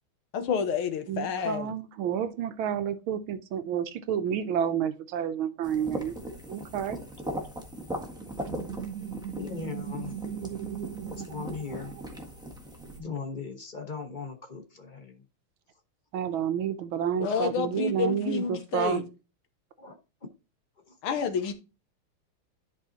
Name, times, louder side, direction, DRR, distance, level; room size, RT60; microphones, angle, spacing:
voice 1, 0.3-1.7 17.2-19.0 21.0-21.5, left 6 dB, 85° left, 2.0 m, -29 dB
voice 2, 1.1-6.2 6.5-7.0 16.1-19.1, right 9 dB, 75° right, 1.5 m, -30 dB
sound 1, 5.6-13.0, equal, ahead, 1.1 m, -39 dB
sound 2, 8.2-12.7, right 9 dB, 60° right, 0.9 m, -39 dB
voice 3, 9.4-10.2 10.9-12.0 13.0-15.2 19.8-20.0 20.9-21.0, left 5 dB, 30° left, 0.9 m, -38 dB
11.0 x 5.5 x 2.9 m
omnidirectional pair, 2.3 m